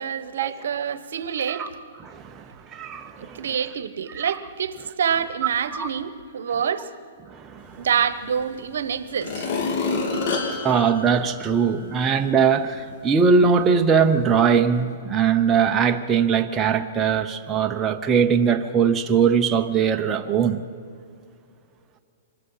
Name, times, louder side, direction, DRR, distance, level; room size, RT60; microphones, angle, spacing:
voice 1, 0.0-1.8 3.2-6.9 7.8-9.5, right 7 dB, 80° right, 1.1 m, -27 dB
voice 2, 2.0-3.5 4.1-4.2 5.7-5.9 7.3-7.9 10.6-20.6, right 6 dB, 15° right, 0.9 m, -21 dB
sound 1, 8.4-8.5 9.1-11.9 12.4-12.5, left 4 dB, 50° left, 3.4 m, -28 dB
25.5 x 20.0 x 5.7 m
hypercardioid pair, 150°, 0 cm